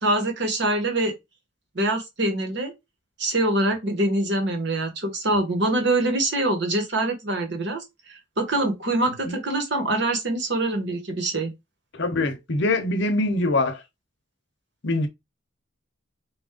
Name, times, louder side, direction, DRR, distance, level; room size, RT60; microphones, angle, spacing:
voice 1, 0.0-1.1 1.7-2.7 3.2-11.5, right 2 dB, 55° right, 1.2 m, -24 dB
voice 2, 11.9-13.8 14.8-15.1, left 2 dB, 55° left, 0.8 m, -23 dB
4.3 x 2.5 x 3.6 m
head